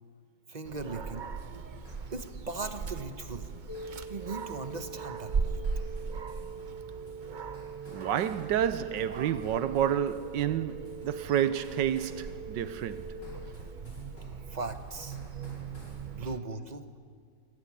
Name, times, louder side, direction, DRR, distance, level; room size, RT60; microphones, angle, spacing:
voice 1, 0.5-1.3 2.1-3.5 4.1-5.6 13.3-13.5 14.5-15.2 16.0-16.8, right 3 dB, 30° right, 1.0 m, -38 dB
Dog, 0.6-16.4, right 5 dB, 50° right, 0.6 m, -40 dB
sound 1, 0.9-16.1, left 1 dB, 85° left, 6.9 m, -53 dB
sound 2, 3.7-13.2, right 6 dB, 15° left, 1.8 m, -44 dB
voice 2, 7.9-13.0, right 10 dB, 85° right, 1.5 m, -29 dB
25.5 x 16.0 x 9.8 m
omnidirectional pair, 1.9 m